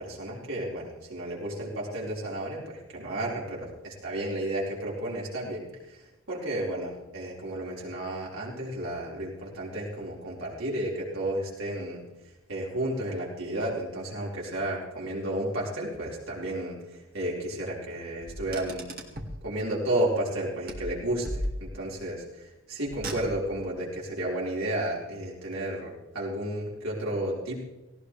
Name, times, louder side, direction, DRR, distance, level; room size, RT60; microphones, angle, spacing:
voice 1, 0.0-6.0 6.3-12.0 12.5-18.9 19.4-27.6, right 1 dB, 75° right, -5 dB, 5.0 m, -32 dB
Car, 18.2-19.4 20.7-22.0 22.9-23.7, equal, 45° right, 2.2 m, -36 dB
18.0 x 17.5 x 3.4 m, 1.1 s
head